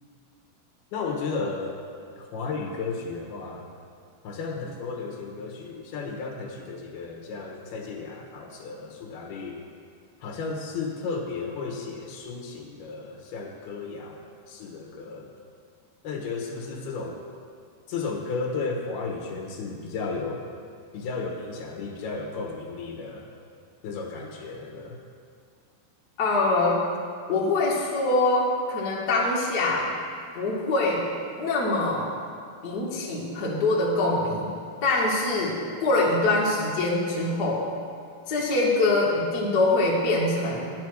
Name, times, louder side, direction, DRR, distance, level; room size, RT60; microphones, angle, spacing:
voice 1, 0.9-1.8 2.2-3.7 4.2-9.6 10.2-15.3 16.0-17.2 17.9-20.4 20.9-23.3 23.8-25.0, left 4 dB, 75° left, 1 dB, 3.1 m, -34 dB
voice 2, 26.2-26.8 27.3-29.9 30.4-31.0 31.4-32.1 32.6-34.5 34.8-37.6 38.3-40.7, left 2 dB, 35° left, -4 dB, 1.8 m, -24 dB
12.5 x 9.6 x 6.2 m, 2.2 s
omnidirectional pair, 4.7 m